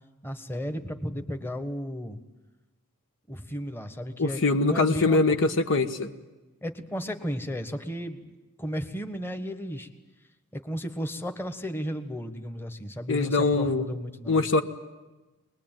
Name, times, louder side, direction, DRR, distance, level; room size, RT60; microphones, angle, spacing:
voice 1, 0.2-2.2 3.3-5.2 6.6-8.3 8.6-9.9 10.5-14.4, equal, 10° left, 7 dB, 1.5 m, -34 dB
voice 2, 4.2-6.1 13.1-13.9 14.3-14.6, left 3 dB, 60° left, 7 dB, 1.4 m, -23 dB
23.5 x 20.5 x 9.2 m, 1.1 s
head